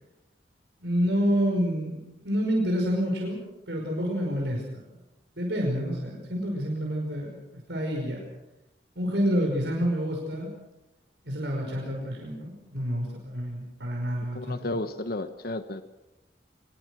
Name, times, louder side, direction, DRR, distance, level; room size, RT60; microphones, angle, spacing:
voice 1, 0.8-5.0 5.4-8.3 9.0-10.5 11.2-14.7, equal, 70° right, 0 dB, 5.3 m, -28 dB
voice 2, 14.3-15.8, left 2 dB, 55° left, 10 dB, 1.2 m, -32 dB
24.5 x 21.5 x 6.4 m, 0.92 s
head